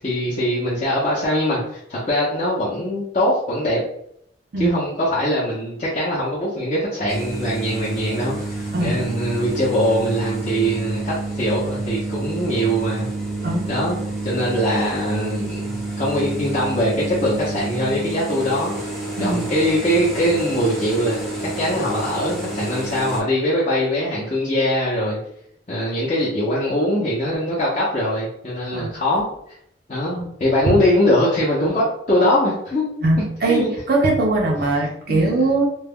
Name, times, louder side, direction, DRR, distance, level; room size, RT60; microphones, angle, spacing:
voice 1, 0.0-1.6 1.9-3.8 4.6-13.1 13.7-14.0 14.2-18.7 19.2-25.2 25.7-29.3 29.9-33.7 35.1-35.2, equal, 35° left, -8 dB, 0.6 m, -22 dB
sound 1, 7.1-23.2, right 2 dB, ahead, 0.8 m, -29 dB
voice 2, 33.0-35.7, right 2 dB, 55° right, -1 dB, 0.4 m, -20 dB
2.3 x 2.1 x 3.4 m, 0.70 s
head